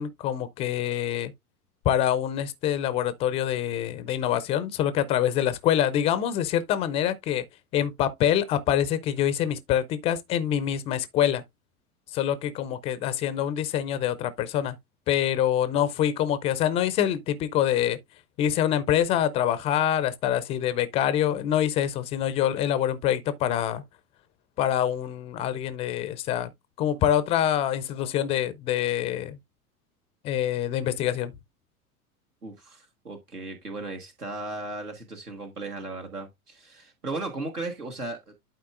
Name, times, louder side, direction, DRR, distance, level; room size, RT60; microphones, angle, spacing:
voice 1, 0.0-1.3 1.8-7.4 7.7-11.4 12.1-14.8 15.1-18.0 18.4-23.8 24.6-26.5 26.8-29.4 30.2-31.3, left 10 dB, 15° left, 0.4 m, -25 dB
voice 2, 32.4-38.3, right 2 dB, 85° right, 1.5 m, -36 dB
12.0 x 4.4 x 2.4 m
figure-of-eight pair, 90°, 45 cm